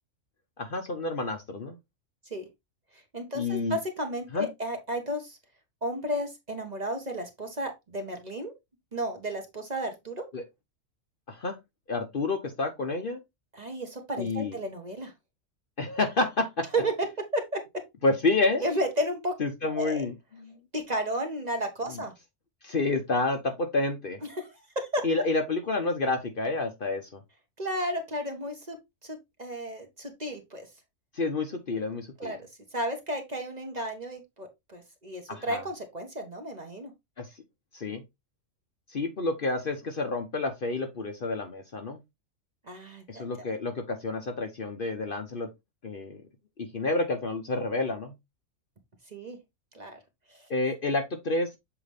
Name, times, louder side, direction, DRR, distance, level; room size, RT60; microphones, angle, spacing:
voice 1, 0.6-1.8 3.3-3.8 4.3-4.5 10.3-10.4 11.3-11.6 11.9-13.2 14.2-14.6 15.8-16.7 18.0-18.7 19.4-20.6 21.9-22.0 22.6-24.2 25.0-27.2 31.1-32.4 35.3-35.6 37.2-37.4 37.7-38.0 38.9-42.0 43.1-45.5 45.8-46.2 46.6-48.1 50.5-51.6, left 3 dB, 45° left, 0.9 m, -29 dB
voice 2, 3.1-5.4 5.8-8.5 8.9-10.2 13.5-15.1 16.7-17.1 17.3-17.6 18.6-19.3 19.7-20.0 20.7-22.1 24.3-25.0 27.6-28.8 29.0-30.7 32.2-36.9 42.7-43.5 49.1-49.4 49.7-50.0 50.3-50.5, right 1 dB, 35° right, 1.1 m, -33 dB
7.3 x 3.9 x 3.4 m
omnidirectional pair, 1.4 m